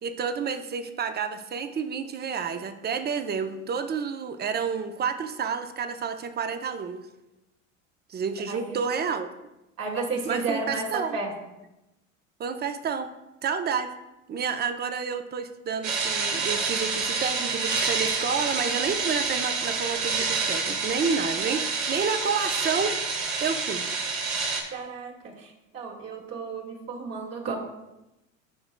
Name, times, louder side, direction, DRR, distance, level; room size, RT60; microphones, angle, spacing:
voice 1, 0.0-7.0 8.1-9.3 10.2-11.2 12.4-13.1 13.4-13.9 14.3-23.0 23.4-23.8, right 6 dB, 25° right, 8 dB, 0.7 m, -30 dB
voice 2, 9.8-11.3 24.7-27.6, right 4 dB, 40° right, -1 dB, 2.0 m, -32 dB
sound 1, 15.8-24.6, right 4 dB, 80° right, 1.6 m, -28 dB
12.5 x 4.9 x 2.2 m, 0.96 s
hypercardioid pair, 80°, 39 cm